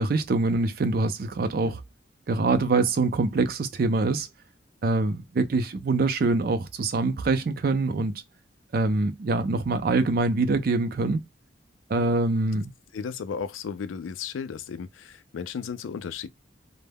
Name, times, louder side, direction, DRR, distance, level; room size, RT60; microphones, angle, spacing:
voice 1, 0.0-1.8 2.3-4.3 4.8-8.1 8.7-11.2 11.9-12.7, right 3 dB, 50° right, 0.4 m, -24 dB
voice 2, 12.9-16.3, left 6 dB, 90° left, 0.3 m, -34 dB
2.2 x 2.1 x 3.3 m
head